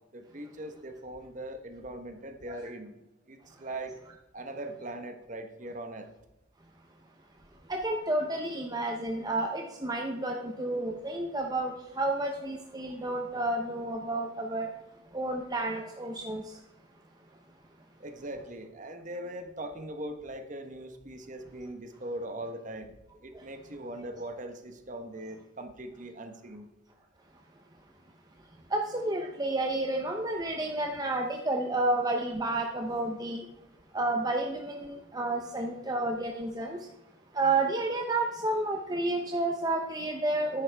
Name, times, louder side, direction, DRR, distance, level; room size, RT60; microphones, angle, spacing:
voice 1, 0.1-2.9 3.3-3.9 4.3-6.1 18.0-22.9 23.2-26.7, right 1 dB, 35° right, 7 dB, 1.1 m, -40 dB
voice 2, 7.7-14.7 15.1-16.4 28.7-33.4 33.9-36.9 37.3-40.6, right 2 dB, 20° right, 2 dB, 0.7 m, -30 dB
13.5 x 10.5 x 3.5 m, 0.96 s
head